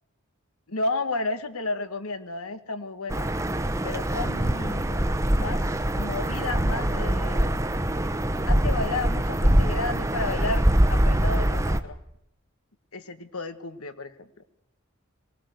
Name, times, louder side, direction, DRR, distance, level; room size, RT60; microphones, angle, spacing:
voice 1, 0.7-3.3 3.8-7.6 8.5-12.0 12.9-14.1, left 2 dB, 85° left, 11 dB, 1.7 m, -32 dB
sound 1, 3.1-11.8, right 1 dB, 15° right, 0.9 m, -24 dB
22.5 x 19.0 x 8.1 m, 0.78 s
head